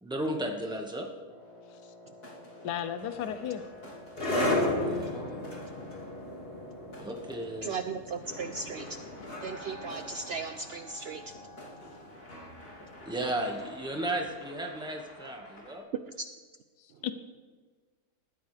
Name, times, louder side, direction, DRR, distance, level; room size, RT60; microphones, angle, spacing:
voice 1, 0.0-1.1 4.8-5.5 7.0-7.7 13.0-15.8, right 1 dB, 5° right, 1 dB, 1.5 m, -34 dB
Wind instrument woodwind instrument, 1.3-7.9, left 2 dB, 25° right, 2.5 m, -52 dB
sound 1, 1.4-1.9 2.2-15.8, left 1 dB, 55° left, 3.4 m, -50 dB
voice 2, 2.6-3.7 17.0-17.1, left 9 dB, 80° left, 10 dB, 1.4 m, -33 dB
sound 2, 3.0-14.1, left 1 dB, 35° left, 2.4 m, -35 dB
voice 3, 7.6-8.9 9.4-11.2, right 5 dB, 75° right, 8 dB, 0.5 m, -36 dB
19.5 x 14.0 x 3.4 m, 1.4 s
omnidirectional pair, 1.7 m